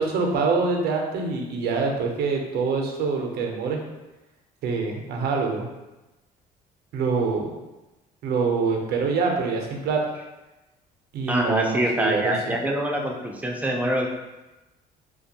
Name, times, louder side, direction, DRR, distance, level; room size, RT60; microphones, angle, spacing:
voice 1, 0.0-3.8 4.6-5.7 6.9-7.5 8.2-10.0 11.1-12.6, right 4 dB, 70° right, 1 dB, 0.5 m, -25 dB
voice 2, 11.3-14.1, right 1 dB, 10° right, 0 dB, 0.3 m, -25 dB
2.4 x 2.2 x 2.7 m, 1.1 s
cardioid pair, 110°, 17 cm